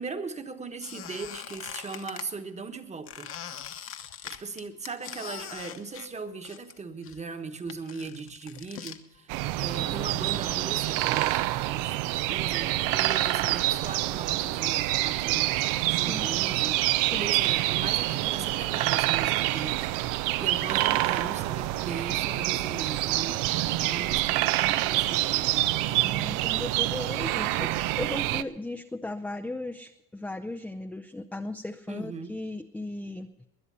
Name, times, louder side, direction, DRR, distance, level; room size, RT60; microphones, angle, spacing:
voice 1, 0.0-3.3 3.8-12.0 12.3-15.5 15.8-16.8 17.2-25.7 31.9-32.4, right 4 dB, 20° right, 8 dB, 1.2 m, -39 dB
Squeak, 0.8-2.3 3.1-6.8 7.0-9.0, left 9 dB, 40° left, 1.1 m, -42 dB
sound 1, 9.3-28.4, right 16 dB, 80° right, 0.6 m, -27 dB
voice 2, 15.9-16.3 17.0-17.3 20.9-21.0 26.0-33.5, left 2 dB, 5° left, 6 dB, 0.5 m, -37 dB
20.5 x 10.0 x 5.5 m, 0.97 s
cardioid pair, 120°, 32 cm